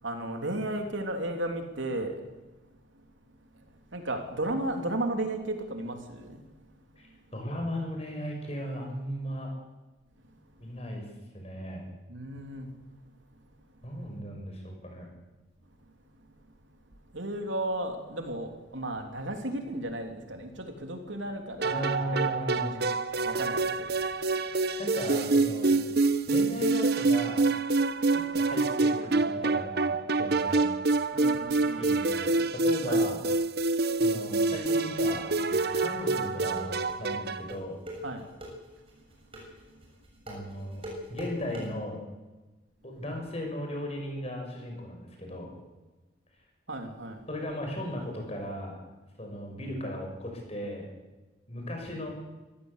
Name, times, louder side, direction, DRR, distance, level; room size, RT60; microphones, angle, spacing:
voice 1, 0.0-2.5 3.5-3.6 3.9-6.4 12.1-12.7 17.1-22.2 22.6-22.7 23.1-24.2 31.1-31.8 32.9-33.1 38.0-38.3 46.7-47.2, right 1 dB, 75° right, 4 dB, 3.4 m, -34 dB
voice 2, 7.0-9.5 10.6-11.1 11.3-11.9 13.8-15.1 21.6-22.8 24.8-25.8 26.3-27.4 28.1-30.7 31.8-33.2 34.0-37.8 39.4-39.5 40.3-40.8 41.1-42.0 42.8-45.5 47.3-48.8 49.2-50.9 51.5-52.1, left 1 dB, 30° left, 2 dB, 6.5 m, -36 dB
sound 1, 21.6-37.5, right 3 dB, 55° right, 1.0 m, -27 dB
sound 2, 34.2-41.7, equal, 30° right, 7.1 m, -43 dB
25.0 x 15.5 x 8.3 m, 1.1 s
head